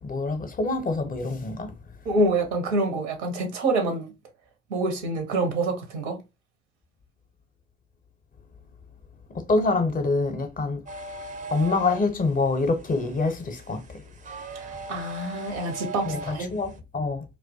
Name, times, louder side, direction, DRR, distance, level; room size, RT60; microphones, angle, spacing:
voice 1, 0.0-1.7 9.3-10.8 11.5-14.0 16.0-17.2, left 3 dB, 25° left, 0.6 m, -26 dB
voice 2, 2.0-4.1 4.7-6.2 14.5-16.5, right 2 dB, 85° right, 0.7 m, -26 dB
sound 1, 10.9-16.8, right 3 dB, 25° right, 0.4 m, -39 dB
2.2 x 2.2 x 2.5 m
hypercardioid pair, 55°, 33 cm